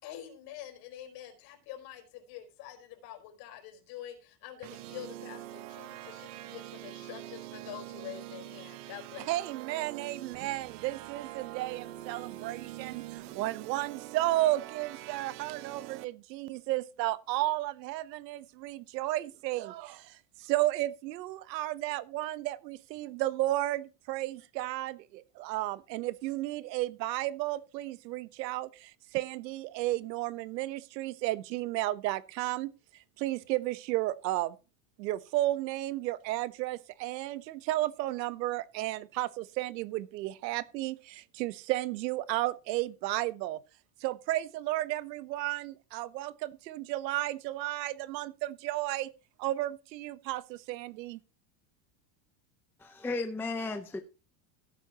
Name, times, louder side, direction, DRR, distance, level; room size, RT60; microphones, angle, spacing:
voice 1, 0.0-5.4 5.8-9.4, left 11 dB, 50° left, 4.5 m, -46 dB
sound 1, 4.6-16.0, right 15 dB, 65° right, 1.1 m, -44 dB
voice 2, 9.3-32.7 33.2-34.5 35.0-43.6 44.0-49.1 49.4-51.2, right 16 dB, 85° right, 1.1 m, -33 dB
voice 3, 52.8-54.0, left 3 dB, 5° left, 0.6 m, -34 dB
17.0 x 8.8 x 2.9 m
supercardioid pair, 160°, 49 cm